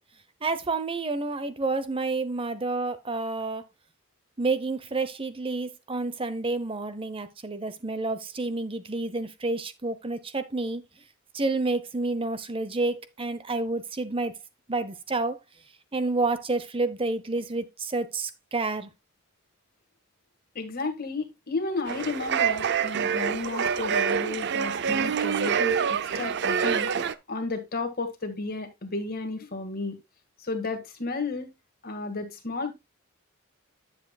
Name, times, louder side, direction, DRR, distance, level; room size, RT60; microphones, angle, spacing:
voice 1, 0.4-3.6 4.4-10.8 11.3-14.3 14.7-15.4 15.9-18.9, right 3 dB, 25° right, 0.8 m, -29 dB
voice 2, 20.6-26.9 27.3-30.0 30.4-31.5 31.8-32.7, left 3 dB, 45° left, 1.9 m, -33 dB
sound 1, 21.9-27.1, right 7 dB, 55° right, 0.5 m, -26 dB
10.0 x 7.6 x 2.3 m
head